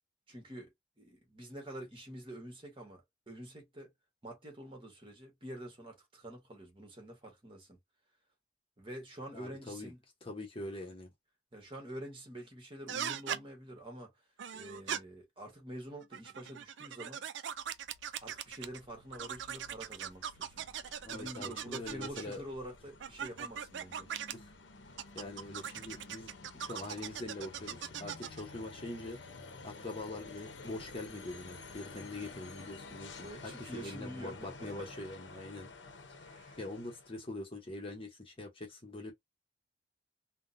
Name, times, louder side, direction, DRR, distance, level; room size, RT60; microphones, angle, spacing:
voice 1, 0.3-0.7 1.0-3.9 4.2-7.8 8.8-10.0 11.5-14.1 14.5-17.2 18.2-20.7 21.1-24.1 33.2-34.9 36.2-36.6, right 1 dB, 30° right, 1.3 m, -47 dB
voice 2, 9.3-9.9 10.2-11.1 21.0-22.4 24.3-24.5 25.1-29.2 29.6-35.7 36.6-39.1, left 2 dB, 30° left, 0.9 m, -43 dB
sound 1, 12.9-13.4 14.4-15.0 16.0-18.8 19.1-22.4 23.0-24.3 25.0-28.4, right 8 dB, 80° right, 0.4 m, -40 dB
sound 2, 17.5-37.3, left 3 dB, 85° left, 0.8 m, -52 dB
3.6 x 2.2 x 2.6 m
head